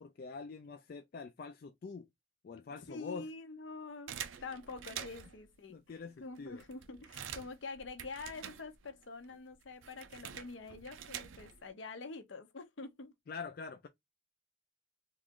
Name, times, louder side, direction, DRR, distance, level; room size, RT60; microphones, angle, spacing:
voice 1, 0.0-2.1 2.4-3.3 5.7-6.6 13.3-13.9, left 4 dB, 50° left, 0.3 m, -45 dB
voice 2, 2.6-13.1, left 3 dB, 70° left, 0.7 m, -46 dB
sound 1, 4.1-5.4 6.1-6.2 6.4-9.0 9.3-11.7, right 8 dB, 75° right, 0.5 m, -47 dB
3.2 x 2.4 x 3.7 m
head